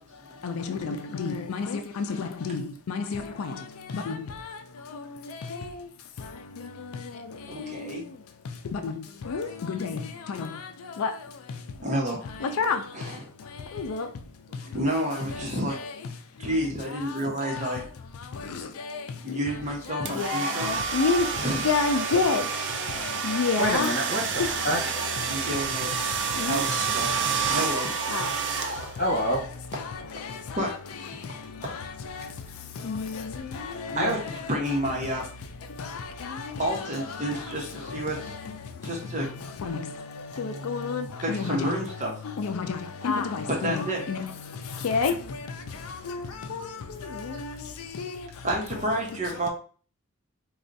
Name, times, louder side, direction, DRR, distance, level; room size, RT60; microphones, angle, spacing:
voice 1, 2.2-2.6 3.1-3.2 9.3-9.8 11.0-11.1 12.6-12.8 20.3-20.4 20.9-21.3 21.6-22.4 23.3-23.9 26.4-26.6 28.1-28.2 40.7-41.0 42.4-42.6 43.0-43.2 43.6-43.7 44.1-44.2 44.8-45.1, left 4 dB, 90° left, 0.4 m, -25 dB
voice 2, 7.5-8.0 11.8-12.2 12.9-13.3 14.5-15.8 16.4-17.8 19.2-20.8 21.3-21.6 24.7-26.0 26.4-27.9 30.5-30.7 33.9-35.2 36.6-38.3 38.8-39.3 41.2-42.1 43.6-44.3 47.3-47.4 48.4-49.5, right 1 dB, 35° right, 0.9 m, -30 dB
sound 1, 20.0-29.2, right 7 dB, 55° right, 0.4 m, -29 dB
voice 3, 23.6-24.8 29.0-29.4 33.9-34.2, equal, 45° left, 1.5 m, -27 dB
4.2 x 2.3 x 2.6 m
head